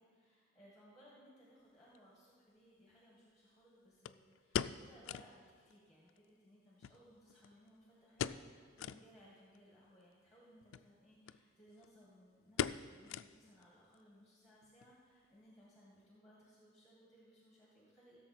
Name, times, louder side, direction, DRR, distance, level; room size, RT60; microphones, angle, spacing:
voice 1, 0.0-18.2, equal, ahead, -6 dB, 1.8 m, -64 dB
sound 1, 1.9-2.0 4.0-5.4 5.7-5.8 6.1-6.2 6.8-7.7 8.1-8.5 8.8-9.0 9.5-9.6 10.6-10.9 11.3-11.4 11.7-12.0 12.6-13.6 13.9-14.0 14.6-14.9 15.2-15.3, left 8 dB, 75° left, 0.3 m, -41 dB
16.0 x 6.7 x 4.4 m, 2.2 s
head